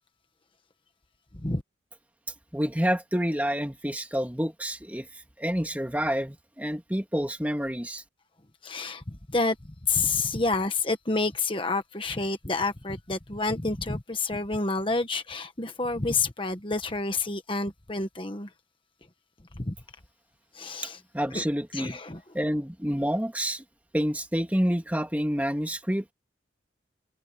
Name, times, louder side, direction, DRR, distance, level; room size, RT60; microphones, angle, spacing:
voice 1, 2.5-8.0 20.8-22.0 22.3-23.6 23.9-26.1, equal, 10° right, 1.9 m, -28 dB
voice 2, 8.6-9.6 9.9-18.5 19.5-19.7 20.5-21.0 21.3-21.4 21.7-22.2, left 3 dB, 25° left, 1.3 m, -29 dB
open air
head